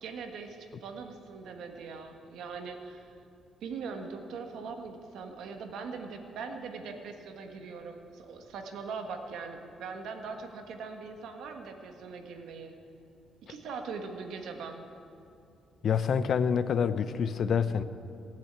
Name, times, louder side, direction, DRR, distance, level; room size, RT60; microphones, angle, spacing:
voice 1, 0.0-3.1 3.6-12.8 13.5-14.8, right 5 dB, 80° right, 4 dB, 1.5 m, -41 dB
voice 2, 15.8-17.8, left 7 dB, 55° left, 13 dB, 0.6 m, -27 dB
17.0 x 7.5 x 8.9 m, 2.6 s
cardioid pair, 135°, 0 cm